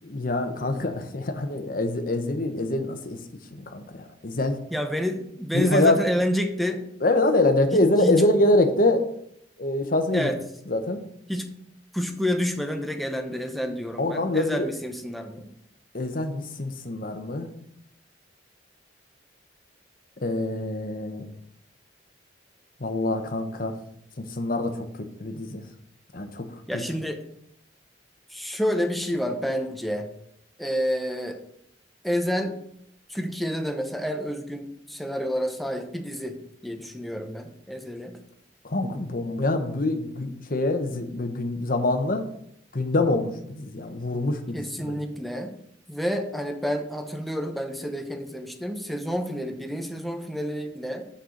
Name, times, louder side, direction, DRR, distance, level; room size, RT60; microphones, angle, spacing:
voice 1, 0.0-3.2 3.5-4.6 5.5-6.0 7.0-9.0 9.6-10.3 10.7-11.0 14.0-14.7 15.9-17.5 20.2-21.2 22.8-23.7 24.2-24.7 25.2-25.6 26.1-26.5 38.6-42.2 42.7-44.9, left 2 dB, 50° left, 6 dB, 1.0 m, -25 dB
voice 2, 4.7-6.9 7.7-8.2 10.1-10.4 11.3-11.5 11.9-15.5 26.7-27.2 28.3-30.1 30.6-31.4 32.0-32.6 33.1-38.2 44.5-45.6 45.9-51.1, equal, ahead, 4 dB, 0.8 m, -29 dB
6.5 x 5.6 x 6.5 m, 0.72 s
head